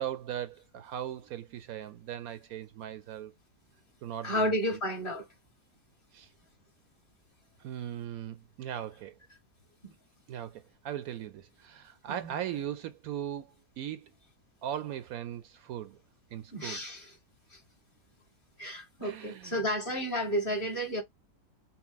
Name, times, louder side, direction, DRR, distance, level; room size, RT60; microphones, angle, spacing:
voice 1, 0.0-3.3 4.0-4.5 6.1-6.3 7.6-9.1 10.3-14.1 14.6-16.0 16.3-16.8 19.0-19.6, right 10 dB, 70° right, 1.0 m, -39 dB
voice 2, 4.2-5.3 9.8-9.9 12.1-12.3 16.5-17.1 17.5-17.6 18.6-21.0, equal, 35° left, 1.8 m, -32 dB
5.8 x 2.1 x 3.7 m
omnidirectional pair, 1.7 m